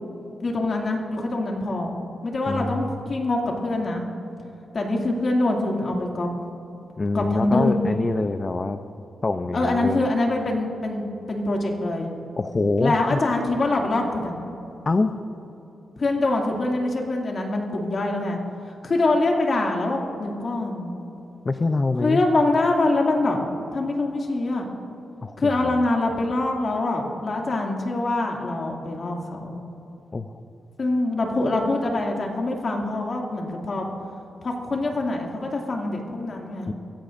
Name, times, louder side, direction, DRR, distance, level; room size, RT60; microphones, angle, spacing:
voice 1, 0.4-1.9 2.2-4.0 4.7-6.3 7.1-7.7 9.5-12.1 12.8-14.5 16.0-18.4 18.8-20.9 22.0-23.4 23.7-24.6 25.4-29.6 30.8-33.9 34.4-36.7, left 2 dB, 45° left, 0 dB, 2.4 m, -24 dB
voice 2, 2.5-2.8 7.0-8.8 9.2-10.0 12.4-13.2 14.9-15.1 21.4-22.2 25.2-25.3 25.6-25.7 30.1-30.3 36.7-36.8, left 3 dB, 30° left, 8 dB, 0.5 m, -24 dB
24.5 x 16.0 x 2.6 m, 3.0 s
wide cardioid pair, 120°, 0 cm